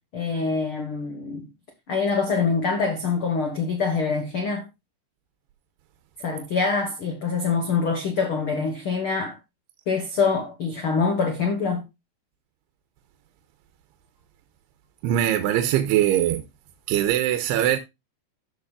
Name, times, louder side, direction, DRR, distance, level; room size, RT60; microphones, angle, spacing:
voice 1, 0.1-1.5 1.9-4.7 6.2-9.4 9.9-11.9, left 4 dB, 75° left, 1.2 m, -25 dB
voice 2, 15.0-16.4 16.9-17.8, right 12 dB, 85° right, 2.8 m, -21 dB
16.0 x 6.0 x 2.4 m
omnidirectional pair, 4.7 m